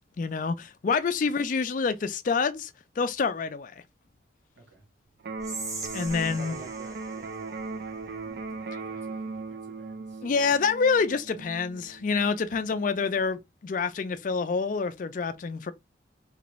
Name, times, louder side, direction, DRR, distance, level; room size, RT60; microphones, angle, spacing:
voice 1, 0.2-2.7 3.0-3.7 5.9-6.6 10.2-15.7, left 5 dB, 45° left, 0.3 m, -27 dB
voice 2, 4.6-4.9 6.2-10.3, right 2 dB, 85° right, 1.2 m, -50 dB
Electric guitar, 5.2-13.2, right 4 dB, 55° right, 0.3 m, -39 dB
Whispering, 5.4-8.6, right 3 dB, 20° right, 0.6 m, -41 dB
3.0 x 2.5 x 3.0 m
head